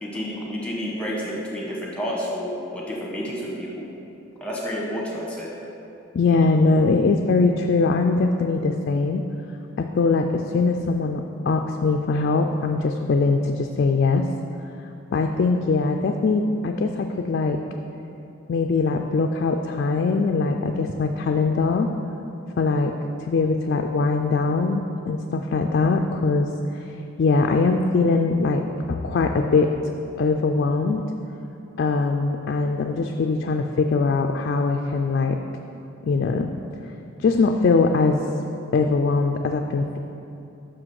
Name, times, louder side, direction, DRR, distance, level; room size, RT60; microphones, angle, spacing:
voice 1, 0.0-3.8 4.4-5.5, equal, 5° left, -4 dB, 1.1 m, -30 dB
voice 2, 6.1-9.2 9.8-14.3 15.1-17.6 18.5-21.9 22.6-28.6 28.9-29.7 30.2-31.0 31.8-35.4 36.0-36.6 37.2-38.2 38.7-40.0, left 3 dB, 50° left, 4 dB, 0.3 m, -22 dB
5.8 x 4.9 x 6.4 m, 2.8 s
head